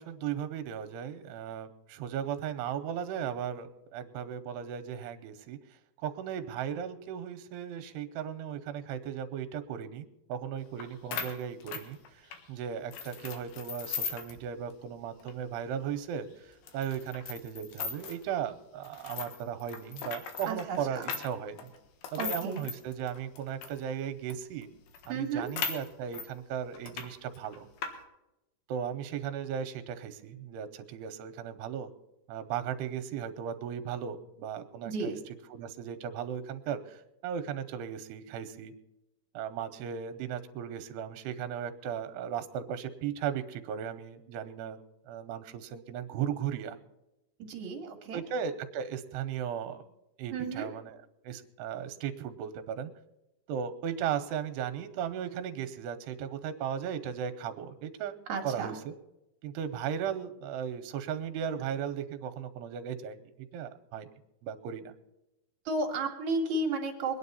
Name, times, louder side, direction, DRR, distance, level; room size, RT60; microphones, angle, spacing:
voice 1, 0.0-5.6 6.0-21.7 22.1-24.7 25.1-27.7 28.7-31.9 32.3-38.7 39.3-44.8 45.1-46.8 48.1-49.8 50.2-51.0 51.2-52.9 53.5-58.2 58.4-58.9 59.4-64.1 64.4-64.9, right 8 dB, 85° right, 10 dB, 2.9 m, -36 dB
sound 1, 10.8-10.9 11.1-12.4 12.9-14.4 14.7-14.8 15.2-15.3 15.9-16.0 16.7-18.2 18.8-23.8 24.3-24.4 24.6-24.7 24.9-26.3 26.7-27.1 27.3-27.9, left 6 dB, 70° left, 3.1 m, -38 dB
voice 2, 20.5-21.0 22.2-22.7 25.1-25.5 34.8-35.2 47.4-48.2 50.3-50.7 58.3-58.8 65.7-67.2, right 3 dB, 55° right, 2 dB, 2.3 m, -33 dB
23.0 x 9.7 x 4.1 m, 0.93 s
omnidirectional pair, 4.8 m